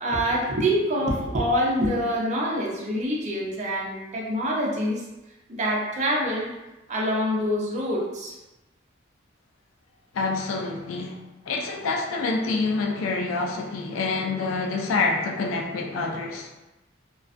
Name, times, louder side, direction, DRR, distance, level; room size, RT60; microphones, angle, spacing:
voice 1, 0.0-5.0 5.5-6.5 6.9-8.4, equal, 35° right, -3 dB, 0.5 m, -25 dB
voice 2, 10.1-11.2 11.5-16.5, left 3 dB, 85° left, 0 dB, 0.4 m, -27 dB
2.4 x 2.2 x 2.4 m, 1.0 s
head